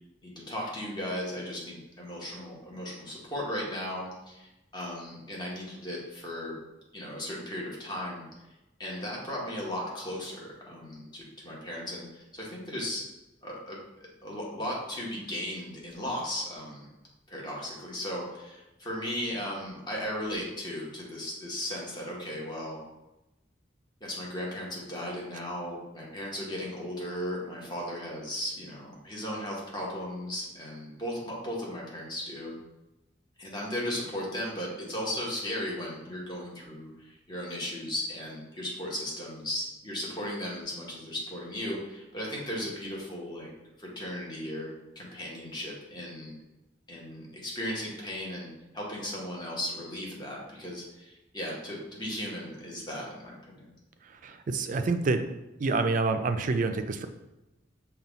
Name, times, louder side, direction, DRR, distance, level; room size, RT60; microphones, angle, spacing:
voice 1, 0.2-6.6 6.9-8.3 8.8-13.0 13.4-13.8 14.2-16.9 17.3-22.8 24.0-32.6 33.4-43.5 43.8-46.3 46.9-53.7, left 1 dB, 25° left, -3 dB, 1.1 m, -36 dB
voice 2, 54.2-55.2 55.6-57.1, right 3 dB, 40° right, 8 dB, 0.3 m, -27 dB
5.5 x 2.3 x 3.9 m, 0.99 s
head